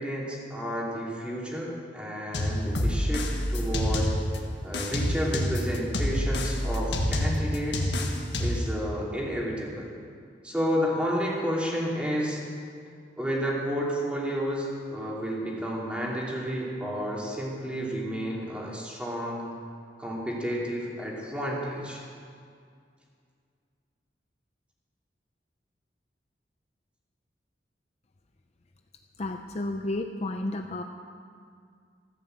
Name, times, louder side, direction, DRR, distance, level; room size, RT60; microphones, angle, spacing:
voice 1, 0.0-4.1 4.6-8.0 8.4-9.9 10.4-12.4 13.2-19.5 20.0-22.0, equal, 5° right, -4 dB, 2.8 m, -31 dB
sound 1, 2.3-4.4 4.7-8.7, left 1 dB, 75° left, 1.7 m, -27 dB
voice 2, 29.2-30.8, left 2 dB, 40° left, 5 dB, 0.6 m, -32 dB
14.5 x 9.6 x 7.7 m, 2.2 s
head